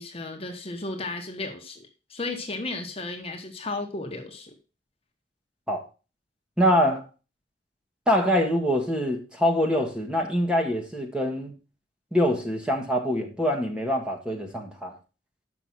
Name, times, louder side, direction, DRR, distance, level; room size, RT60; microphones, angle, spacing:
voice 1, 0.0-4.5, left 2 dB, 35° left, 1.3 m, -34 dB
voice 2, 6.6-7.0 8.1-11.5 12.1-14.9, equal, 5° right, 1.5 m, -24 dB
7.0 x 6.0 x 6.0 m
head